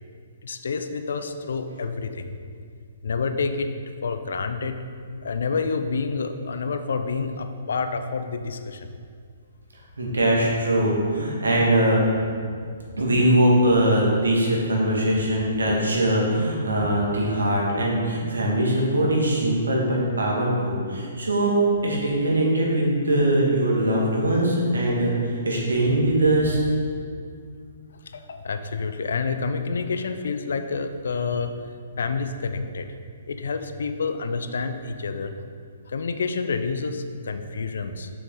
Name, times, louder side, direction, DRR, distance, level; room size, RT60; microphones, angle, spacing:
voice 1, 0.4-2.4 3.0-3.7 4.0-4.8 5.2-8.9 28.0-32.9 33.3-35.3 35.9-38.1, left 4 dB, 65° left, 8 dB, 0.5 m, -28 dB
voice 2, 10.0-12.0 13.0-21.5 21.8-26.6, right 1 dB, 75° right, -3 dB, 1.8 m, -21 dB
6.6 x 6.5 x 3.8 m, 2.2 s
figure-of-eight pair, 125°, 0 cm